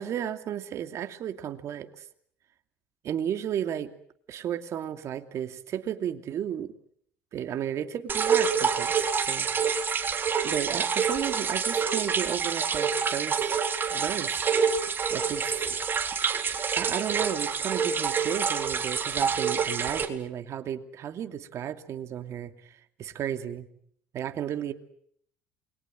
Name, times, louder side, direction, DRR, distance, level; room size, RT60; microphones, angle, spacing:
voice 1, 0.0-2.0 3.0-3.9 4.3-6.7 7.3-8.9 9.3-9.5 10.4-13.5 13.9-14.4 15.1-15.7 16.8-23.7 24.1-24.7, right 10 dB, 55° right, 8 dB, 2.6 m, -33 dB
sound 1, 8.1-20.1, right 6 dB, 35° right, 3.7 m, -27 dB
29.0 x 22.5 x 7.8 m, 0.67 s
supercardioid pair, 75°, 6 cm